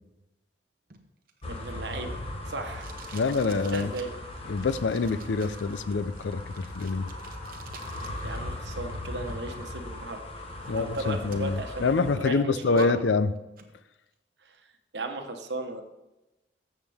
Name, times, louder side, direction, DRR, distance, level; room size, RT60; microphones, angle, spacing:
Packing tape duct tape, 0.9-8.4 8.7-9.7 10.2-10.3 10.6-11.8 12.1-12.9 13.4-13.7, right 5 dB, 50° right, 0.9 m, -50 dB
sound 1, 1.4-12.2, left 1 dB, 30° left, 1.1 m, -39 dB
voice 1, 1.4-2.9 3.5-4.1 8.2-10.2 10.7-13.0 14.4-14.6 14.9-15.8, right 2 dB, 75° right, 5 dB, 1.1 m, -35 dB
voice 2, 3.1-3.9 4.5-7.1 10.7-13.3, left 4 dB, 85° left, 14 dB, 0.5 m, -26 dB
13.0 x 7.4 x 3.5 m, 1.0 s
head